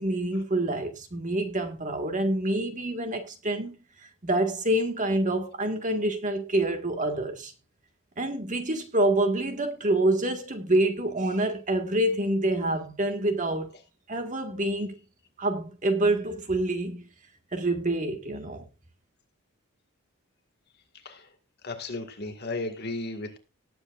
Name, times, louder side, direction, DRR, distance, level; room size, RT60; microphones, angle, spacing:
voice 1, 0.0-3.8 4.2-7.5 8.2-13.7 14.1-15.0 15.4-17.0 17.5-18.6, right 1 dB, 35° right, 1.7 m, -27 dB
voice 2, 21.6-23.4, left 2 dB, 50° left, 1.9 m, -34 dB
19.0 x 7.9 x 2.5 m
head